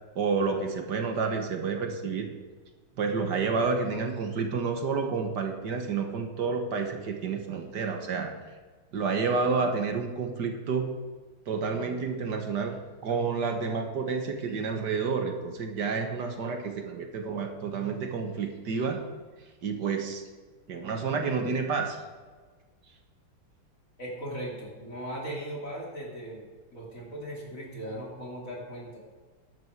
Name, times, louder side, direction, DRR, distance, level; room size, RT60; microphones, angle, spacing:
voice 1, 0.2-2.3 3.0-8.3 8.9-10.9 11.5-12.8 13.0-19.0 19.6-20.2 20.7-22.0, right 5 dB, 55° right, 4 dB, 1.8 m, -29 dB
voice 2, 24.0-26.5 26.7-29.0, right 1 dB, 40° left, -3 dB, 3.0 m, -38 dB
13.0 x 11.0 x 4.8 m, 1.4 s
omnidirectional pair, 2.3 m